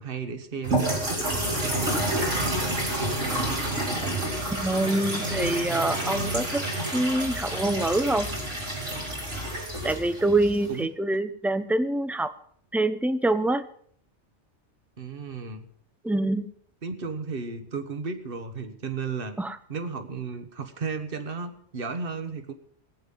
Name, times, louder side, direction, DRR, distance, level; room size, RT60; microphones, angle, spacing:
voice 1, 0.0-2.0 3.1-3.7 10.7-10.9 15.0-15.6 16.8-19.4 19.7-22.5, right 5 dB, 50° right, 9 dB, 1.5 m, -34 dB
sound 1, 0.6-10.8, right 1 dB, 85° right, 4.9 m, -29 dB
voice 2, 4.6-6.7 6.9-8.3 9.8-12.3 12.7-13.6 16.0-16.5 19.4-19.6, right 2 dB, ahead, 11 dB, 0.4 m, -25 dB
19.0 x 9.4 x 5.5 m, 0.63 s
omnidirectional pair, 1.2 m